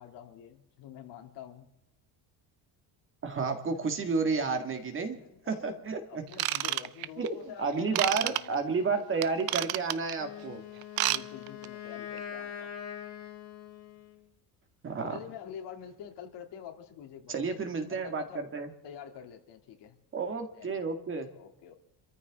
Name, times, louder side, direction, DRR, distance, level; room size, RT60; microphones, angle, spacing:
voice 1, 0.0-1.7 5.0-8.8 11.0-12.7 15.0-17.6 17.9-18.5 18.8-20.0 20.5-20.8 21.3-21.7, left 9 dB, 75° left, 3 dB, 2.8 m, -47 dB
voice 2, 3.2-5.2 5.5-6.2 7.2-7.3 7.6-10.6 14.8-15.2 17.3-18.7 20.1-21.3, right 4 dB, 30° right, 5 dB, 1.9 m, -31 dB
Ratchet pawl / Tools, 6.3-7.3 7.9-8.4 9.2-10.1 10.8-11.2 11.5-11.7 12.2-12.3, right 15 dB, 60° right, 0.7 m, -29 dB
Wind instrument woodwind instrument, 10.1-14.3, left 9 dB, 40° left, 3.1 m, -43 dB
27.5 x 14.0 x 3.6 m, 0.85 s
cardioid pair, 165°, 42 cm